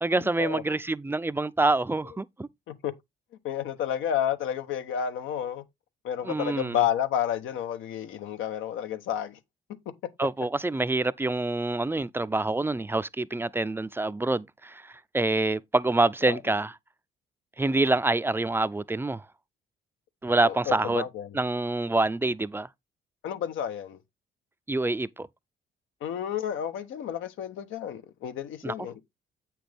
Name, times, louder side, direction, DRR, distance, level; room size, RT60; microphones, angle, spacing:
voice 1, 0.0-2.5 6.2-6.8 10.2-16.7 17.6-19.3 20.2-21.0 21.3-22.7 24.7-25.3 28.6-28.7, right 2 dB, 10° right, 0.4 m, -26 dB
voice 2, 3.4-5.6 6.0-9.4 16.2-16.4 20.4-21.4 23.2-24.0 26.0-28.9, left 9 dB, 85° left, 1.0 m, -31 dB
8.1 x 6.0 x 3.4 m
cardioid pair, 90°, 20 cm